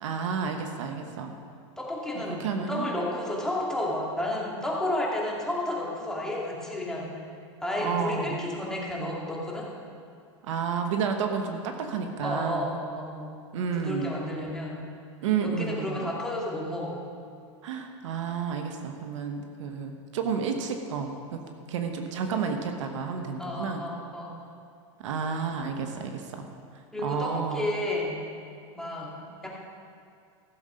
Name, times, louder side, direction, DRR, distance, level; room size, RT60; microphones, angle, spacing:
voice 1, 0.0-1.3 2.1-2.9 7.8-8.4 10.4-12.7 13.5-14.1 15.2-16.1 17.6-21.4 21.7-23.8 25.0-26.5 27.0-27.7, right 6 dB, 75° right, 5 dB, 1.2 m, -31 dB
voice 2, 1.8-7.1 7.6-9.7 12.2-13.3 13.8-14.8 15.4-17.0 23.4-24.3 26.9-28.2 28.7-29.5, left 1 dB, 5° left, -4 dB, 2.4 m, -31 dB
15.0 x 7.4 x 5.2 m, 2.4 s
hypercardioid pair, 120°, 16 cm